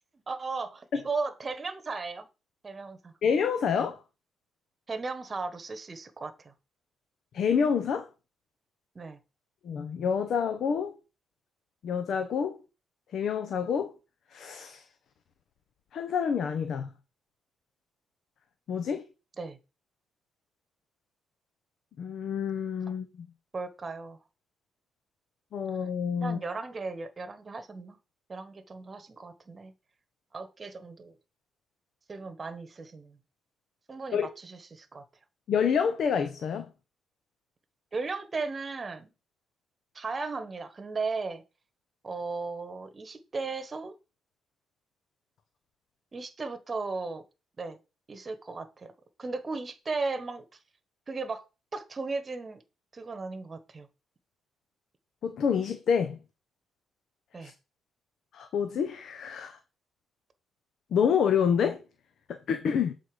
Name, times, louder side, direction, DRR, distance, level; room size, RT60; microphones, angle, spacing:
voice 1, 0.3-2.3 2.6-3.1 4.9-6.5 8.9-9.2 19.4-19.6 23.5-24.2 26.2-28.0 28.3-29.7 30.3-31.1 32.1-33.2 33.9-35.0 37.9-39.1 39.9-41.4 42.0-44.0 46.1-47.2 47.6-47.8 48.1-48.9 49.2-50.4 51.1-51.4 51.7-52.6 52.9-53.9 57.3-57.5, right 4 dB, 30° right, 1.2 m, -36 dB
voice 2, 3.2-4.0 7.3-8.1 9.6-10.9 11.8-12.6 13.1-13.9 14.3-14.8 15.9-16.9 18.7-19.0 22.0-23.3 25.5-26.4 34.1-34.3 35.5-36.7 55.2-56.2 57.4-57.5 58.3-59.6 60.9-61.8 62.3-62.9, left 7 dB, 65° left, 0.8 m, -28 dB
7.7 x 4.1 x 4.9 m
cardioid pair, 90°, 0 cm